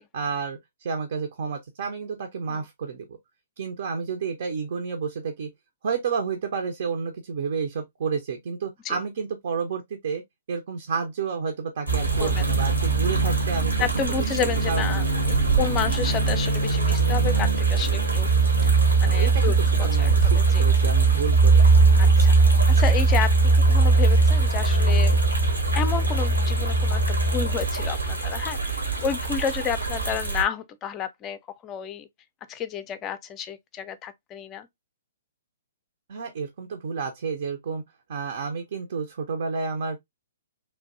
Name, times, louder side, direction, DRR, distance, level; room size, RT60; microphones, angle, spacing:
voice 1, 0.1-3.2 3.6-5.5 5.8-10.2 10.5-14.1 14.4-14.9 19.0-21.6 36.1-37.8 38.1-40.0, right 5 dB, 55° right, 0.6 m, -30 dB
sound 1, 11.9-30.4, right 3 dB, 85° right, 1.2 m, -20 dB
voice 2, 13.8-18.3 18.6-18.7 19.0-20.6 22.0-22.3 22.7-25.2 25.7-32.1 32.5-34.7, left 8 dB, 25° left, 0.4 m, -31 dB
3.2 x 2.6 x 2.5 m
figure-of-eight pair, 125°, 0 cm